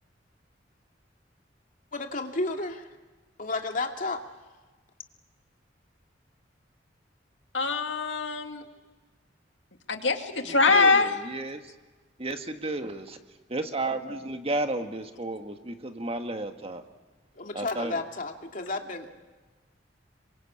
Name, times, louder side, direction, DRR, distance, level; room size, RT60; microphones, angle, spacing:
voice 1, 1.9-2.9 3.4-4.2 17.4-19.1, left 3 dB, 50° left, 3 dB, 2.5 m, -32 dB
voice 2, 7.5-8.6 9.9-11.2, left 4 dB, 80° left, 5 dB, 2.3 m, -23 dB
voice 3, 10.5-11.6 12.2-13.2 13.5-16.8 17.5-18.0, right 2 dB, 35° right, 6 dB, 1.6 m, -32 dB
27.5 x 23.5 x 8.6 m, 1.2 s
head